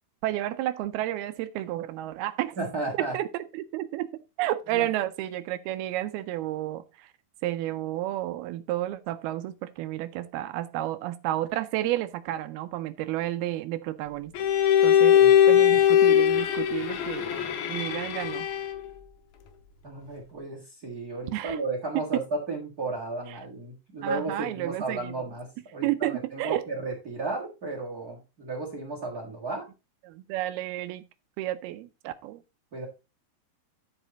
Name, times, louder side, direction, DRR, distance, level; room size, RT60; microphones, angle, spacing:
voice 1, 0.2-2.6 3.1-4.1 4.4-7.1 7.4-14.3 14.8-15.1 15.5-18.5 21.3-21.6 24.0-25.1 25.8-26.6 30.1-31.0 31.4-32.4, right 14 dB, 80° right, 2.4 m, -31 dB
voice 2, 2.6-3.1 4.7-4.9 15.0-15.6 19.8-29.7 32.7-32.8, right 3 dB, 65° right, 0.9 m, -34 dB
Bowed string instrument, 14.4-18.9, left 10 dB, 70° left, 2.6 m, -21 dB
11.0 x 4.9 x 3.9 m
omnidirectional pair, 4.8 m